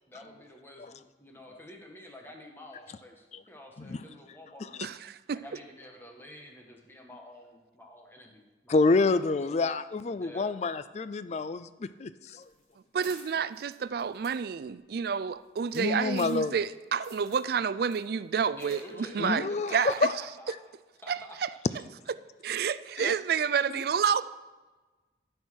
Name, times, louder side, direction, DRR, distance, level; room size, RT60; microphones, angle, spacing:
voice 1, 0.1-4.9 5.3-9.6 10.1-10.6 18.5-19.6 19.9-20.0 20.4-20.5 21.0-21.4, left 1 dB, 10° left, 1.2 m, -49 dB
voice 2, 4.8-5.4 12.9-20.1 21.1-21.5 22.4-24.2, right 6 dB, 55° right, 0.3 m, -29 dB
voice 3, 8.7-12.4 15.7-16.6 19.2-20.1 23.0-23.1, left 3 dB, 35° left, 0.3 m, -28 dB
sound 1, 12.4-16.7 17.0-17.5 17.8-18.8 19.1-19.2 19.9-20.1, right 3 dB, 15° right, 2.1 m, -53 dB
13.0 x 4.4 x 6.3 m
head